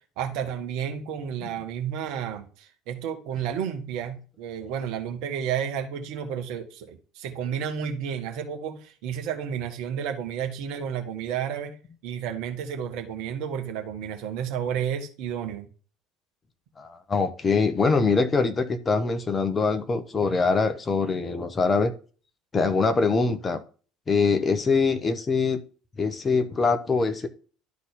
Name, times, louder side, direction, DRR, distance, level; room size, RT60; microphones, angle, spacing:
voice 1, 0.2-11.8 12.0-15.7, right 8 dB, 55° right, 5 dB, 1.4 m, -31 dB
voice 2, 16.8-21.9 22.5-23.6 24.1-25.6 26.0-27.3, left 4 dB, 25° left, 8 dB, 1.2 m, -23 dB
12.0 x 4.2 x 3.7 m, 0.37 s
figure-of-eight pair, 60°, 0 cm